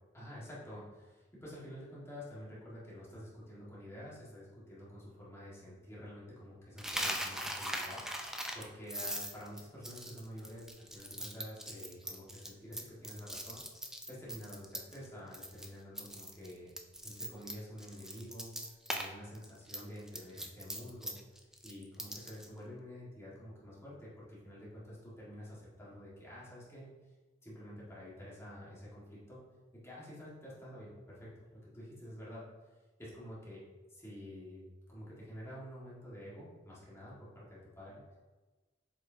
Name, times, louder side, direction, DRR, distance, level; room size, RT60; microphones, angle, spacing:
voice 1, 0.1-16.7 17.0-18.5 18.9-21.2 21.6-26.9 27.4-29.5 29.7-31.3 31.7-32.4 33.0-33.6 33.9-38.2, equal, 15° left, -8 dB, 1.8 m, -49 dB
Coin (dropping), 6.8-15.1 15.3-15.7 16.0-19.1 19.3-22.5, equal, 5° right, 0.5 m, -40 dB
7.5 x 4.9 x 2.8 m, 1.2 s
head